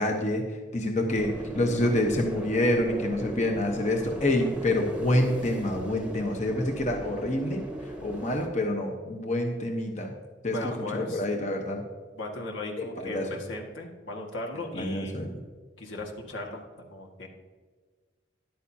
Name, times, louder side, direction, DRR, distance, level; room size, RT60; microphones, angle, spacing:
voice 1, 0.0-10.1 10.4-11.8 12.8-13.3 14.7-15.3, left 1 dB, 40° left, 2 dB, 1.1 m, -27 dB
sound 1, 1.2-8.5, right 1 dB, 5° right, 1.0 m, -38 dB
voice 2, 10.5-11.2 12.1-15.2 15.8-17.3, left 2 dB, 80° left, 1 dB, 1.8 m, -37 dB
13.0 x 11.0 x 2.8 m, 1.4 s
head